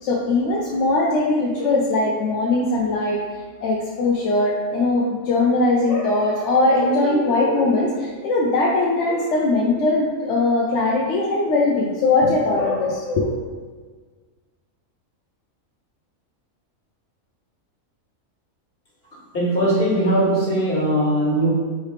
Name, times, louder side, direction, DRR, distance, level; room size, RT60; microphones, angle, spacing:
voice 1, 0.0-3.2 3.6-13.3, left 2 dB, 65° left, -3 dB, 0.8 m, -20 dB
voice 2, 19.3-21.5, right 1 dB, 45° left, -8 dB, 1.8 m, -20 dB
4.6 x 3.3 x 3.2 m, 1.4 s
omnidirectional pair, 1.5 m